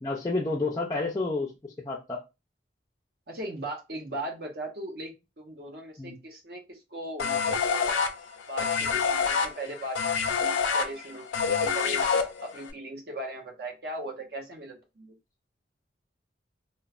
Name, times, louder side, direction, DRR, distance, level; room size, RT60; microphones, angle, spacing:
voice 1, 0.0-2.2 6.0-6.1, left 3 dB, 20° left, -4 dB, 0.3 m, -30 dB
voice 2, 3.3-8.0 8.5-10.1 10.4-12.0 12.4-15.2, right 1 dB, 55° right, 2 dB, 0.7 m, -38 dB
sound 1, 7.2-12.7, left 5 dB, 85° left, 0.4 m, -26 dB
2.9 x 2.0 x 2.4 m, 0.25 s
head